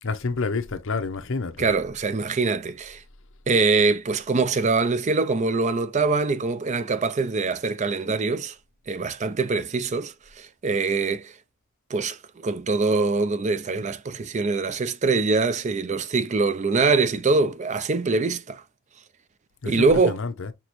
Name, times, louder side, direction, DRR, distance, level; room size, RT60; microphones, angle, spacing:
voice 1, 0.0-1.6 19.6-20.5, left 4 dB, 60° left, 0.7 m, -28 dB
voice 2, 1.6-3.0 3.5-8.6 8.9-11.3 11.9-18.6 19.7-20.2, right 4 dB, 30° right, 0.4 m, -23 dB
5.9 x 2.9 x 3.0 m
head